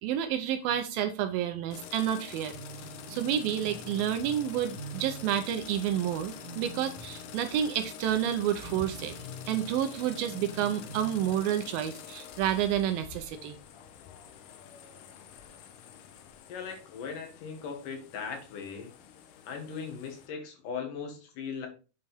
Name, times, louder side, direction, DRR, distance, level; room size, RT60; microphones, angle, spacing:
voice 1, 0.0-2.6 3.1-9.1 9.5-13.6, right 10 dB, 80° right, 7 dB, 2.2 m, -30 dB
sound 1, 1.7-20.3, left 9 dB, 85° left, 1.8 m, -47 dB
sound 2, 2.5-11.4, right 1 dB, 30° right, 2.4 m, -46 dB
voice 2, 16.5-18.9 19.5-21.7, left 6 dB, 60° left, 3 dB, 3.0 m, -38 dB
7.8 x 5.4 x 3.5 m, 0.33 s
omnidirectional pair, 4.7 m